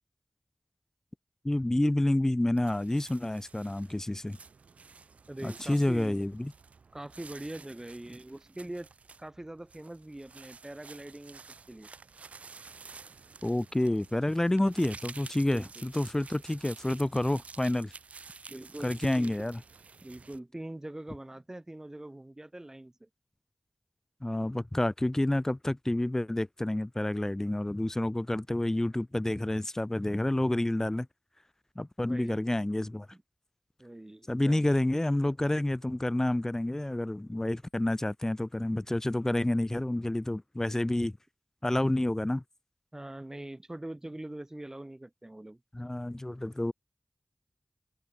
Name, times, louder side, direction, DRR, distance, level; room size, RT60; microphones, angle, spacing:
voice 1, 1.4-4.4 5.4-6.5 13.4-17.9 18.8-19.6 24.2-31.1 31.8-33.1 34.3-41.2 41.6-42.4 45.7-46.7, left 1 dB, 20° left, 0.9 m, -29 dB
sound 1, 2.6-20.4, right 5 dB, 90° right, 4.5 m, -50 dB
voice 2, 5.3-6.2 6.9-8.9 9.2-11.4 11.7-11.9 15.4-15.9 18.5-19.4 20.0-23.1 32.1-32.5 33.1-33.2 33.8-34.7 42.9-45.6, right 1 dB, 25° right, 2.0 m, -43 dB
cardioid pair, 50°, 2 cm